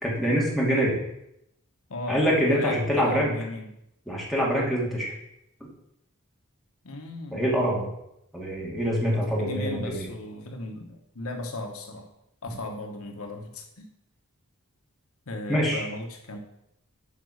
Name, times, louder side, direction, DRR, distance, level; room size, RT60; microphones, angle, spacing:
voice 1, 0.0-0.9 2.1-3.3 4.1-5.1 7.3-7.9 8.3-10.1 15.5-15.8, equal, ahead, -4 dB, 2.5 m, -25 dB
voice 2, 1.9-3.7 6.8-7.5 9.1-12.1 12.4-13.9 15.3-16.4, left 2 dB, 70° left, 4 dB, 1.2 m, -36 dB
8.9 x 5.2 x 6.5 m, 0.79 s
head